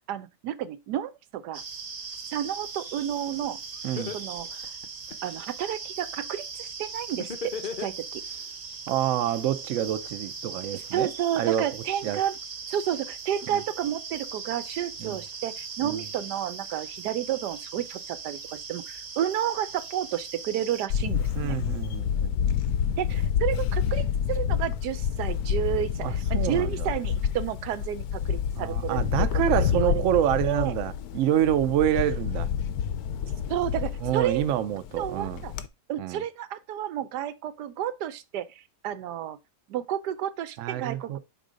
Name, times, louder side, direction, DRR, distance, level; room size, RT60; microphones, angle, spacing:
voice 1, 0.1-1.6 2.3-3.6 4.1-4.7 5.2-7.5 7.8-8.2 10.7-12.4 12.7-21.6 23.0-29.0 29.5-30.7 33.5-34.5 35.0-35.5 35.9-39.4 39.7-41.2, right 11 dB, 90° right, 1.3 m, -31 dB
sound 1, 1.5-20.9, right 5 dB, 45° right, 0.5 m, -39 dB
Laughter, 3.4-3.5 4.0-5.4 7.2-8.4, left 6 dB, 55° left, 0.5 m, -35 dB
voice 2, 8.9-11.1 11.4-11.7 12.0-12.2 13.5-13.6 15.0-15.2 15.8-16.0 21.3-22.6 26.0-26.9 28.6-32.5 34.0-35.4 36.0-36.2 40.6-41.2, right 11 dB, 65° right, 0.9 m, -27 dB
Camera, 20.9-35.7, left 8 dB, 75° left, 1.1 m, -28 dB
5.4 x 3.8 x 5.0 m
omnidirectional pair, 1.7 m